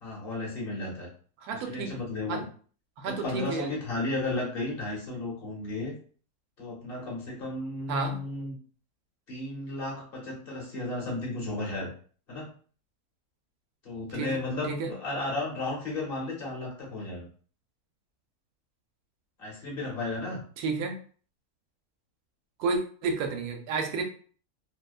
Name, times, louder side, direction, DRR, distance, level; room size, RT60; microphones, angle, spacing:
voice 1, 0.0-1.1 1.5-2.4 3.1-5.9 6.6-8.5 9.3-11.9 12.3-12.5 13.8-17.3 19.4-20.4, left 2 dB, 45° left, -3 dB, 1.0 m, -34 dB
voice 2, 1.4-2.0 2.3-2.4 3.0-3.7 7.9-8.2 14.1-14.4 14.6-14.9 20.6-21.0 22.6-24.0, right 4 dB, 80° right, 4 dB, 1.1 m, -31 dB
2.7 x 2.1 x 2.3 m, 0.43 s
omnidirectional pair, 1.6 m